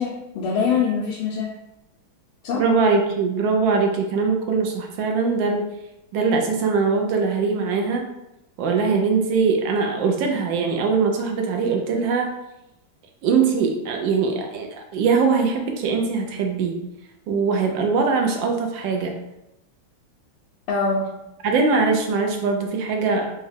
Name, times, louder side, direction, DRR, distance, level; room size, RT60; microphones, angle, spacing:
voice 1, 0.0-1.5 2.4-2.6 20.7-21.1, left 5 dB, 85° left, -4 dB, 1.5 m, -23 dB
voice 2, 2.5-5.6 6.1-8.1 8.6-12.3 13.2-16.8 17.3-19.2 21.4-23.3, right 4 dB, 75° right, 3 dB, 1.1 m, -21 dB
4.1 x 2.3 x 3.2 m, 0.89 s
omnidirectional pair, 2.3 m